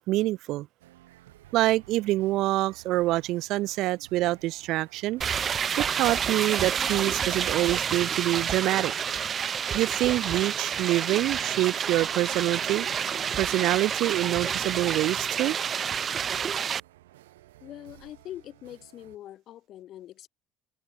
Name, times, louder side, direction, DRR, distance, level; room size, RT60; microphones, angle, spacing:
voice 1, 0.1-0.7 1.5-5.2 5.8-8.9 9.7-12.9 13.4-15.6, right 17 dB, 65° right, 0.4 m, -26 dB
sound 1, 0.8-19.2, right 15 dB, 85° right, 7.3 m, -54 dB
sound 2, 5.2-16.8, right 7 dB, 45° right, 1.0 m, -29 dB
voice 2, 17.6-20.3, left 12 dB, 60° left, 5.8 m, -43 dB
hypercardioid pair, 60°, 0 cm